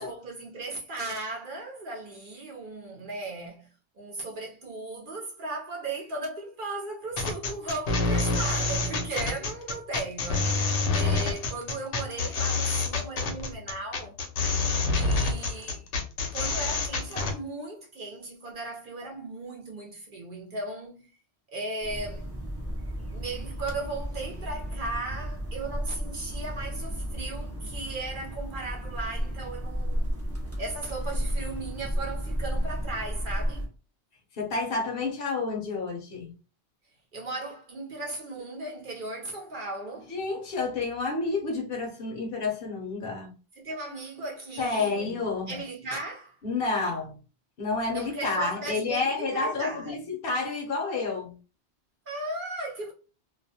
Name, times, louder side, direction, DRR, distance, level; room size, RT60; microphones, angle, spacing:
voice 1, 0.0-3.7 4.0-14.2 14.9-15.9 16.3-21.1 21.5-22.3 23.1-30.1 30.6-33.7 37.1-40.1 43.6-45.2 45.5-46.4 47.9-50.0 52.1-52.9, right 2 dB, 60° right, 0.6 m, -36 dB
sound 1, 7.2-17.3, left 3 dB, 85° left, 0.9 m, -27 dB
sound 2, 21.8-33.7, equal, 25° right, 0.3 m, -33 dB
voice 2, 34.3-36.3 40.1-43.4 44.6-45.6 46.4-47.2 47.6-51.4, left 3 dB, 60° left, 0.8 m, -30 dB
2.3 x 2.1 x 2.6 m
omnidirectional pair, 1.2 m